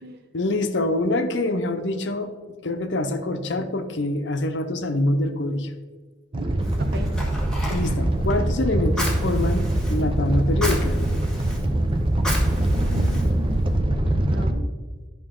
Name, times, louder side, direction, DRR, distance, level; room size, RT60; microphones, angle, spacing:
voice 1, 0.3-2.3 2.6-5.7 7.7-11.0, left 2 dB, 65° left, 8 dB, 0.7 m, -25 dB
Animal, 6.3-14.5, right 1 dB, 25° right, 0.6 m, -23 dB
voice 2, 6.3-7.1 12.7-13.7 14.3-14.6, equal, 55° right, 4 dB, 1.0 m, -37 dB
Fire, 6.6-13.8, left 1 dB, 5° left, 1.6 m, -35 dB
11.0 x 5.6 x 3.7 m, 1.4 s
head